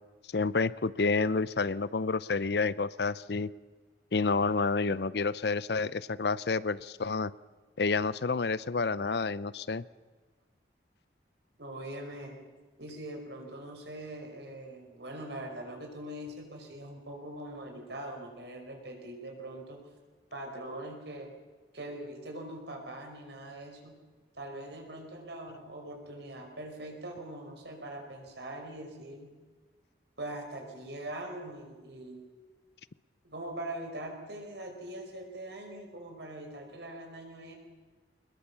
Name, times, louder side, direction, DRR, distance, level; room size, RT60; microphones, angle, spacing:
voice 1, 0.3-3.5 4.1-7.3 7.8-9.8, left 4 dB, 65° left, 18 dB, 0.6 m, -29 dB
voice 2, 11.6-12.4 12.8-19.8 20.3-21.3 21.7-24.0 24.3-29.3 30.2-32.2 33.2-37.5, right 1 dB, 75° right, 3 dB, 5.3 m, -42 dB
23.0 x 21.0 x 7.1 m, 1.4 s
head